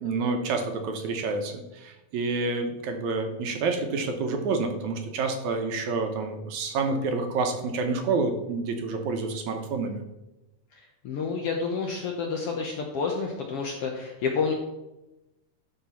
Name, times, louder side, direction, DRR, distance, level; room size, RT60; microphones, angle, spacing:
voice 1, 0.0-10.0, right 3 dB, 65° right, 5 dB, 2.2 m, -28 dB
voice 2, 11.0-14.5, left 5 dB, 75° left, 1 dB, 1.3 m, -29 dB
12.0 x 4.4 x 5.7 m, 0.97 s
omnidirectional pair, 4.0 m